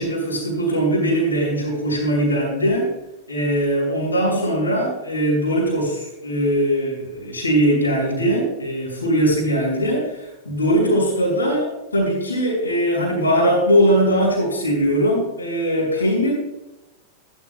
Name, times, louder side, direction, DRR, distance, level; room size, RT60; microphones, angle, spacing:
voice 1, 0.0-2.9 3.3-16.3, equal, 80° left, -4 dB, 4.5 m, -20 dB
13.0 x 12.5 x 2.3 m, 0.92 s
figure-of-eight pair, 90°, 0 cm